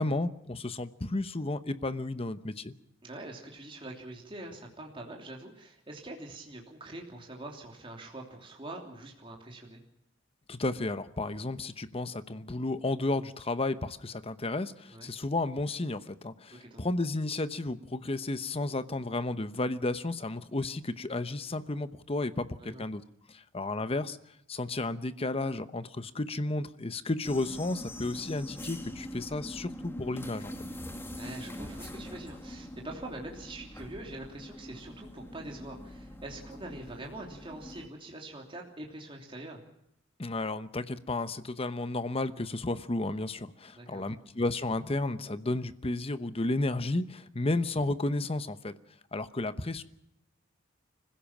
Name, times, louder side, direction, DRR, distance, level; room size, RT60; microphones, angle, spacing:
voice 1, 0.0-2.7 10.5-23.0 23.3-24.2 24.5-30.5 40.2-48.7 49.1-49.8, left 2 dB, 30° left, 12 dB, 0.9 m, -32 dB
voice 2, 3.0-9.8 14.9-15.1 16.6-16.9 22.6-22.8 31.1-39.6 43.7-44.3, right 2 dB, 25° right, 0 dB, 3.1 m, -44 dB
sound 1, 27.2-37.9, left 1 dB, 10° left, 2.0 m, -43 dB
25.0 x 16.0 x 7.3 m, 0.81 s
head